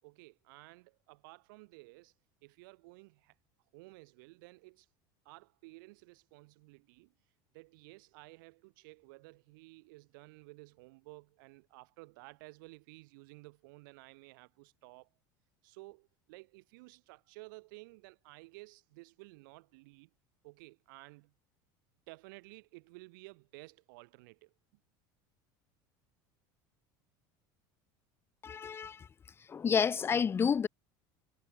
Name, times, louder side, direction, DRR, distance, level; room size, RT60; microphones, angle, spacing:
voice 1, 0.0-2.1 2.4-3.4 3.7-4.9 5.2-7.1 7.5-15.1 15.6-20.1 20.4-21.3 22.1-24.5, right 25 dB, 80° right, 7.2 m, -54 dB
voice 2, 28.4-29.0 29.5-30.7, left 6 dB, 20° left, 0.4 m, -29 dB
supercardioid pair, 110°, 11 cm